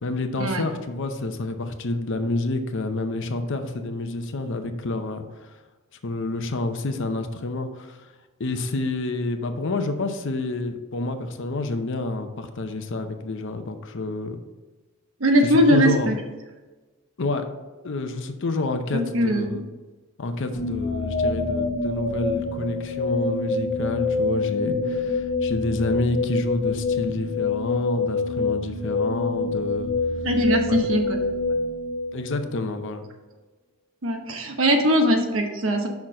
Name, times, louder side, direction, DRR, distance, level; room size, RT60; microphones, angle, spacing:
voice 1, 0.0-5.5 6.0-8.1 8.4-14.4 15.4-16.1 17.2-17.4 17.8-19.6 20.2-29.9 30.7-30.8 32.1-33.1, left 2 dB, 60° left, 7 dB, 0.7 m, -28 dB
voice 2, 15.2-16.1 18.9-19.6 30.2-31.2 34.0-35.9, equal, 65° right, 4 dB, 1.0 m, -21 dB
sound 1, 20.5-32.6, left 3 dB, 35° left, 1.0 m, -26 dB
5.8 x 4.3 x 6.3 m, 1.2 s
head